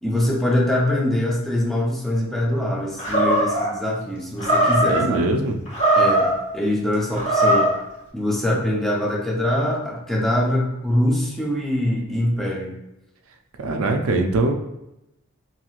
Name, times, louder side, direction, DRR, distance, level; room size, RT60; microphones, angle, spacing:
voice 1, 0.0-5.3 6.0-7.7 8.1-12.7, left 1 dB, ahead, -3 dB, 0.5 m, -23 dB
Animal, 3.0-3.7 4.4-5.0 5.7-6.4 7.1-7.8, right 1 dB, 55° left, 1.2 m, -19 dB
voice 2, 4.9-5.6 13.6-14.5, right 2 dB, 70° right, 3 dB, 0.4 m, -22 dB
2.9 x 2.7 x 2.4 m, 0.88 s
head